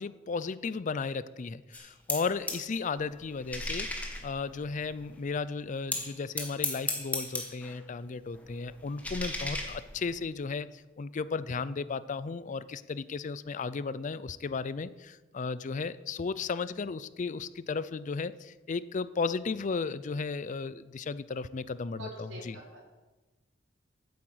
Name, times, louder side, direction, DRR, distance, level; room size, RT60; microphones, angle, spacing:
voice 1, 0.0-22.6, left 4 dB, 40° left, 16 dB, 0.4 m, -35 dB
sound 1, 1.7-2.7 3.0-5.2 5.9-7.8 8.1-10.2, left 2 dB, 10° left, 1.7 m, -37 dB
voice 2, 22.0-22.8, equal, 75° right, -1 dB, 3.8 m, -44 dB
10.0 x 8.6 x 7.9 m, 1.2 s
head